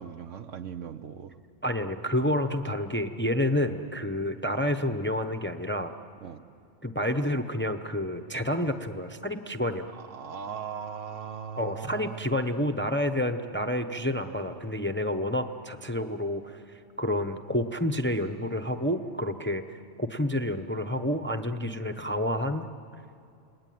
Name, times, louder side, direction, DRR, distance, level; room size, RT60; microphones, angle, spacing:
voice 1, 0.0-1.4 6.2-6.4 10.0-12.2, right 7 dB, 75° right, 10 dB, 1.3 m, -39 dB
voice 2, 1.6-5.9 6.8-9.9 11.6-22.6, left 1 dB, 10° left, 7 dB, 0.7 m, -29 dB
28.5 x 20.5 x 9.3 m, 2.5 s
omnidirectional pair, 1.3 m